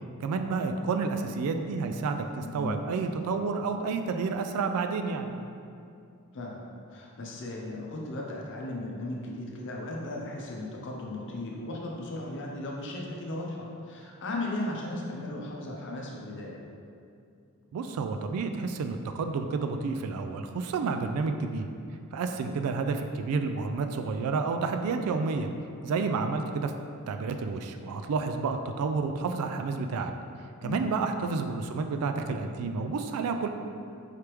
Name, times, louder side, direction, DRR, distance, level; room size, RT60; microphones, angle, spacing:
voice 1, 0.2-5.3 17.7-21.7 22.1-25.5 25.8-26.7 27.1-30.1 30.6-33.5, right 4 dB, 75° right, 6 dB, 0.3 m, -30 dB
voice 2, 6.3-16.6 30.6-30.9, left 2 dB, 55° left, -2 dB, 0.7 m, -36 dB
4.9 x 3.3 x 3.0 m, 2.5 s
head